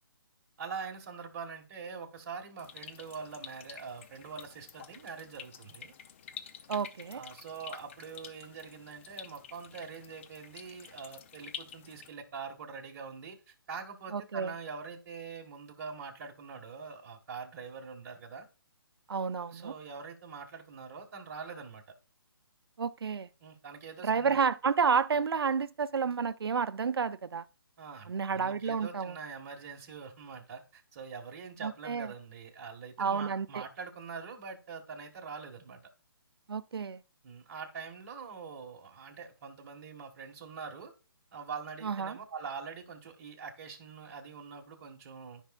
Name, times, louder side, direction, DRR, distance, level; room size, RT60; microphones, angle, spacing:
voice 1, 0.6-5.9 7.1-18.5 19.5-21.8 23.4-24.4 27.8-35.8 37.2-40.9 41.3-45.4, right 5 dB, 40° right, 1.7 m, -44 dB
sound 1, 2.6-12.1, left 8 dB, 30° left, 0.6 m, -49 dB
voice 2, 6.7-7.2 14.1-14.5 19.1-19.7 22.8-23.3 24.0-27.5 28.1-29.2 31.6-32.1 33.0-33.6 36.5-37.0 41.8-42.2, right 6 dB, 80° right, 0.6 m, -30 dB
13.0 x 5.4 x 2.4 m
hypercardioid pair, 160°, 12 cm